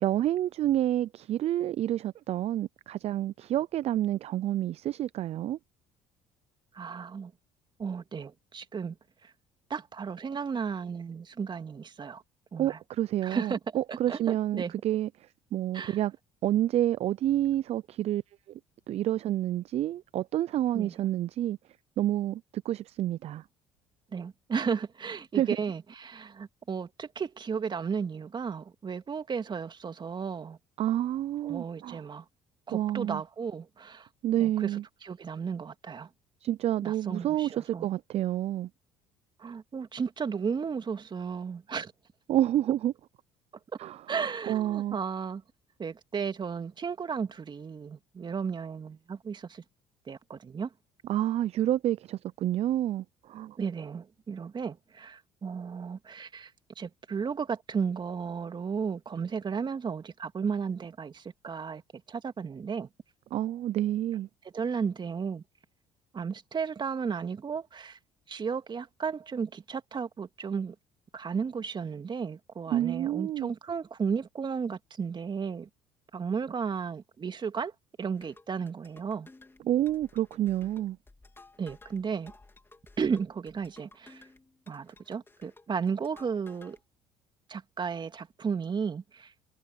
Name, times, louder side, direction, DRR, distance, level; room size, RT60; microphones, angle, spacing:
voice 1, 0.0-5.6 12.6-15.1 15.5-16.1 16.4-18.2 18.9-21.6 22.0-23.4 25.3-25.5 30.8-32.0 32.7-33.2 34.2-34.8 36.4-38.7 42.3-42.9 43.8-44.0 44.5-45.0 51.1-53.6 63.3-64.3 72.7-73.5 79.7-81.0, right 12 dB, 55° right, 0.7 m, -28 dB
voice 2, 6.7-7.3 7.8-8.9 9.2-9.3 9.7-12.2 12.5-12.8 13.2-13.6 13.9-14.7 15.7-16.0 20.7-20.9 24.1-30.6 31.4-32.2 32.7-34.1 34.4-36.1 36.8-37.9 39.4-41.9 44.1-45.4 45.8-49.6 50.1-50.7 53.6-61.8 62.1-62.9 64.5-65.4 66.1-68.0 68.3-70.7 71.1-75.7 76.1-77.7 78.0-79.3 81.6-82.3 83.0-84.2 84.7-86.8 87.5-89.3, right 6 dB, 35° right, 2.5 m, -34 dB
sound 1, 78.2-86.8, left 2 dB, 15° left, 4.1 m, -56 dB
hypercardioid pair, 60°, 13 cm